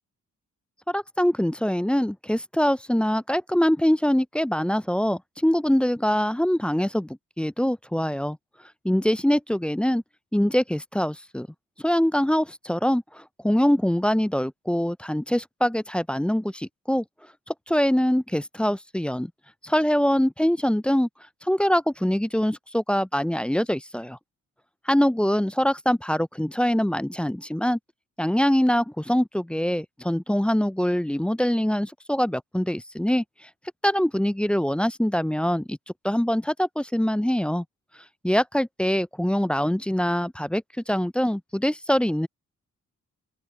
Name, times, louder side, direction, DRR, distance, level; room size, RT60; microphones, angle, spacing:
voice 1, 0.9-8.4 8.8-10.0 10.3-11.5 11.8-17.0 17.5-19.3 19.6-21.1 21.4-24.2 24.9-27.8 28.2-33.5 33.8-35.8 36.0-37.6 38.2-42.3, equal, 5° left, 0.3 m, -24 dB
open air
cardioid pair, 65°, 32 cm